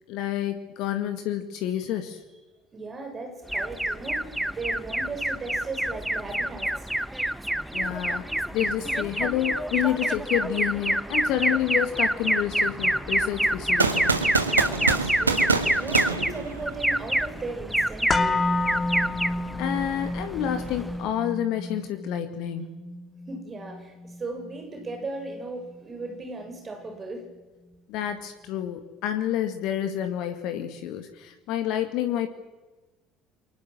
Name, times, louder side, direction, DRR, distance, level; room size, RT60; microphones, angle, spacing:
voice 1, 0.1-2.2 7.7-14.1 19.6-22.8 27.9-32.3, left 11 dB, 55° left, 8 dB, 1.9 m, -29 dB
voice 2, 2.7-7.2 14.5-18.3 23.3-27.3, right 3 dB, 30° right, 3 dB, 6.9 m, -37 dB
Alarm, 3.5-21.1, right 1 dB, 5° right, 1.1 m, -27 dB
sound 1, 13.8-17.0, right 4 dB, 85° right, 1.6 m, -25 dB
sound 2, 18.1-26.2 26.5-26.6, left 2 dB, 25° left, 2.3 m, -31 dB
29.5 x 24.0 x 7.6 m, 1.2 s
figure-of-eight pair, 60°, 0 cm